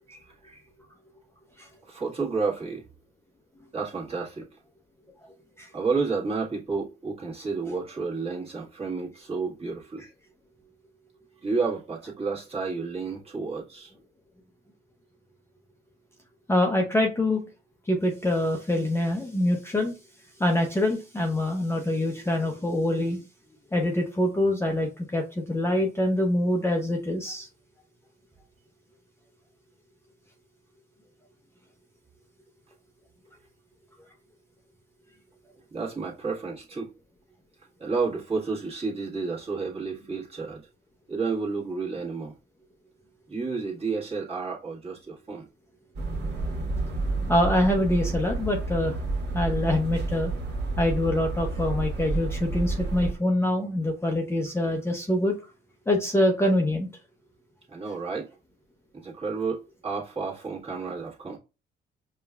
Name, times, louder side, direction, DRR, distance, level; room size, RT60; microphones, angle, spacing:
voice 1, 0.1-0.7 1.8-2.8 3.7-4.5 5.7-10.0 11.4-13.9 35.7-36.9 37.8-40.6 41.1-42.3 43.3-45.5 57.7-58.3 58.9-61.4, right 4 dB, 30° right, 1.4 m, -31 dB
voice 2, 16.5-17.4 17.9-19.9 20.4-23.2 23.7-27.5 47.3-49.0 49.3-50.3 50.8-55.4 55.9-56.9, left 1 dB, 10° left, 0.6 m, -25 dB
sound 1, 46.0-53.1, right 3 dB, 60° right, 1.3 m, -30 dB
5.2 x 2.3 x 2.3 m
cardioid pair, 90°, 20 cm